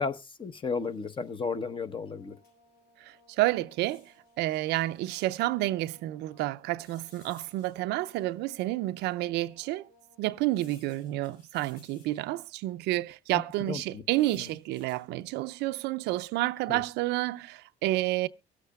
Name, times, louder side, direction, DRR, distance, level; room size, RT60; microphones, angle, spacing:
voice 1, 0.0-2.3 13.3-13.4 13.7-14.0 16.7-16.8, left 5 dB, 30° left, 0.9 m, -33 dB
sound 1, 0.8-1.4 2.4-2.5 2.8-2.9 3.7-5.5 6.8-8.5 9.1-9.2 10.5-12.5 13.8-15.1 15.6-15.9, left 3 dB, 65° left, 4.6 m, -61 dB
sound 2, 1.8-10.5, left 1 dB, 85° left, 5.0 m, -63 dB
voice 2, 3.0-9.9 10.2-18.3, right 17 dB, 85° right, 0.5 m, -30 dB
23.5 x 8.1 x 2.3 m
cardioid pair, 110°, 17 cm